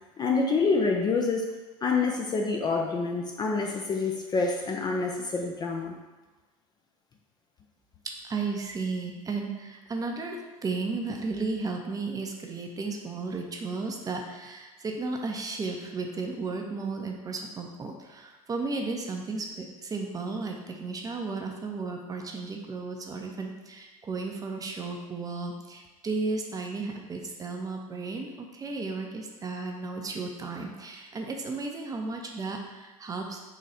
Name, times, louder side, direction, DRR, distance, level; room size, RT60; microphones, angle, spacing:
voice 1, 0.2-1.5 1.8-6.0, left 4 dB, 20° left, 2 dB, 0.4 m, -27 dB
voice 2, 8.0-33.4, right 3 dB, 20° right, 2 dB, 0.6 m, -34 dB
3.8 x 3.0 x 4.2 m, 1.2 s
figure-of-eight pair, 80°, 19 cm